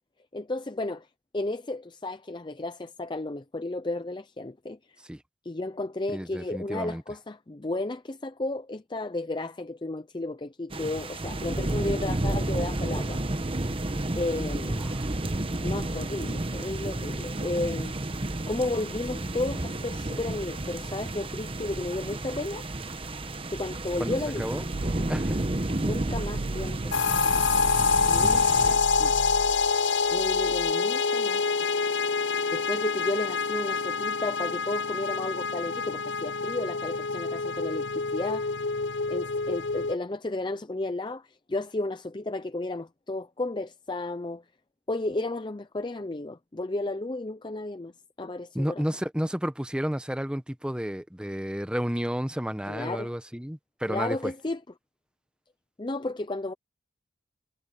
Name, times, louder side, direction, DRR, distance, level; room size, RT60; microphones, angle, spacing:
voice 1, 0.3-1.1 1.3-4.8 5.4-13.2 14.2-14.7 15.6-18.0 18.5-22.7 23.5-24.4 25.8-27.0 28.1-29.2 30.1-31.4 32.5-38.7 39.1-44.4 44.9-47.9 48.2-48.8 52.7-53.1 53.9-54.6 55.8-56.5, left 2 dB, 25° left, 0.5 m, -33 dB
voice 2, 6.1-7.0 14.7-15.1 24.0-24.6 25.1-25.4 48.5-54.3, equal, 5° right, 0.9 m, -31 dB
sound 1, 10.7-28.7, right 1 dB, 30° right, 1.0 m, -31 dB
sound 2, 24.7-30.7, right 3 dB, 60° right, 0.7 m, -37 dB
sound 3, 26.9-39.9, left 5 dB, 75° left, 0.6 m, -26 dB
head